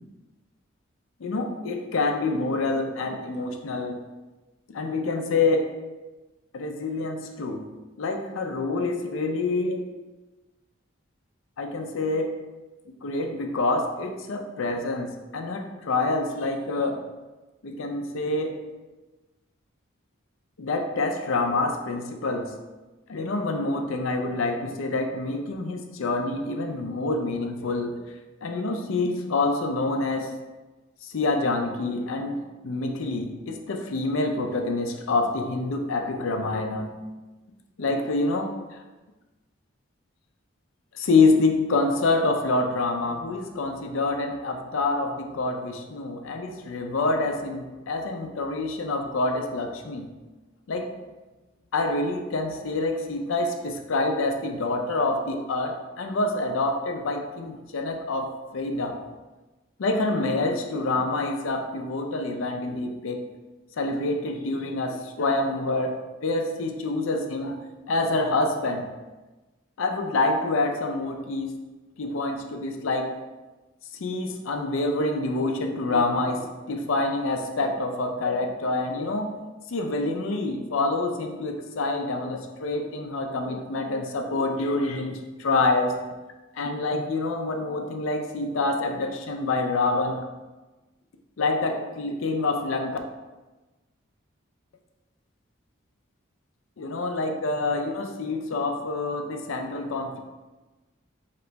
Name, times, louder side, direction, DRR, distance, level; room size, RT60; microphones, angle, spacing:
voice 1, 1.2-4.0 4.7-5.7 6.5-7.7 8.0-9.8 11.6-12.3 13.0-17.0 17.6-18.6 20.6-22.5 23.1-28.0 28.4-30.3 31.0-36.9 37.8-38.8 40.9-50.1 50.7-50.9 51.7-59.0 59.8-63.2 63.8-65.9 66.2-67.6 67.9-68.9 69.8-71.5 72.0-73.2 74.0-79.3 79.7-86.0 86.5-90.2 91.4-93.0 96.8-100.2, left 2 dB, 80° left, 4 dB, 0.5 m, -27 dB
4.0 x 2.9 x 3.3 m, 1.2 s
head